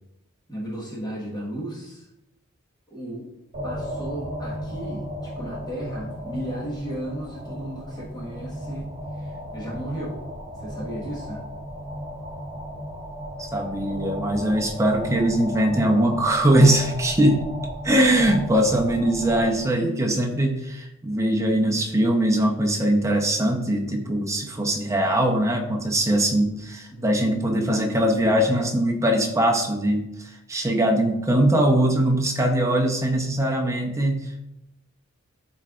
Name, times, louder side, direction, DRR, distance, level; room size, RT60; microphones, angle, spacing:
voice 1, 0.5-2.1 2.9-3.3 3.6-10.2 10.6-11.4 26.9-27.2, right 1 dB, 20° left, -6 dB, 1.6 m, -35 dB
sound 1, 3.5-19.6, equal, 35° right, 1.7 m, -35 dB
voice 2, 13.4-17.5 17.8-34.5, right 1 dB, 15° right, 1 dB, 0.8 m, -21 dB
12.0 x 4.4 x 2.5 m, 0.91 s
head